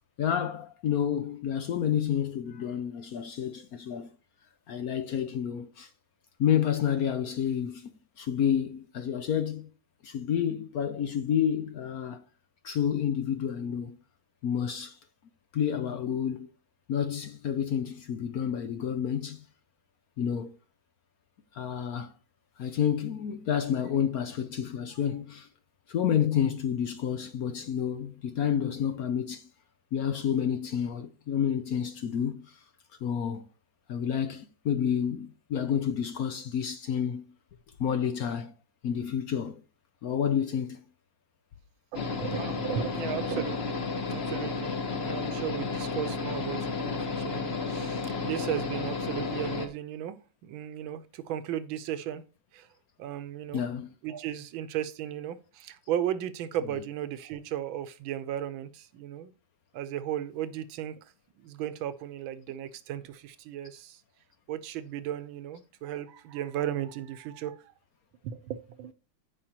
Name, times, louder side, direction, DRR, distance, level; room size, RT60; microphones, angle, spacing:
voice 1, 0.2-4.1 4.7-5.9 6.4-7.9 8.2-9.7 10.0-12.2 12.6-14.0 14.4-15.0 15.5-16.5 16.9-19.4 20.2-20.5 21.5-22.1 22.6-25.5 25.9-29.5 29.9-32.6 33.0-33.5 33.9-37.2 37.8-38.5 38.8-39.6 40.0-40.8 53.5-53.9, left 8 dB, 75° left, 0.8 m, -29 dB
sound 1, 41.9-49.7, left 4 dB, 40° left, 1.0 m, -32 dB
voice 2, 41.9-52.2 52.5-52.7 53.0-53.6 54.0-59.3 59.7-60.9 61.4-64.0 64.5-67.6 68.2-68.9, right 11 dB, 75° right, 1.5 m, -35 dB
15.0 x 5.2 x 2.9 m
omnidirectional pair, 2.3 m